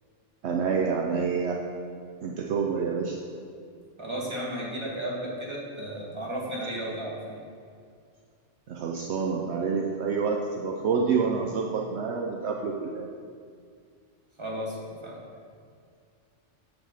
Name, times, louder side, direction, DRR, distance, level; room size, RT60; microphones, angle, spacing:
voice 1, 0.4-1.7 2.2-3.2 8.7-13.1, right 5 dB, 70° right, 0 dB, 0.9 m, -28 dB
voice 2, 4.0-7.4 14.4-15.2, right 1 dB, 25° right, -5 dB, 1.7 m, -34 dB
9.6 x 4.1 x 6.5 m, 2.2 s
omnidirectional pair, 1.3 m